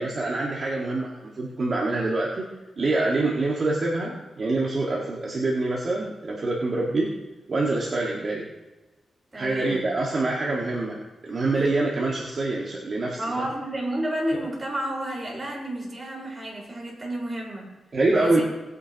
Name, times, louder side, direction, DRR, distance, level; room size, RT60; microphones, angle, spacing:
voice 1, 0.0-2.4 2.8-7.1 7.5-8.5 9.3-13.2 17.9-18.4, right 2 dB, 45° right, -4 dB, 1.8 m, -25 dB
voice 2, 9.3-9.9 11.5-11.7 13.2-17.7 18.1-18.4, right 1 dB, 25° right, -3 dB, 4.8 m, -31 dB
19.5 x 9.7 x 3.0 m, 1.1 s
wide cardioid pair, 115°, 0 cm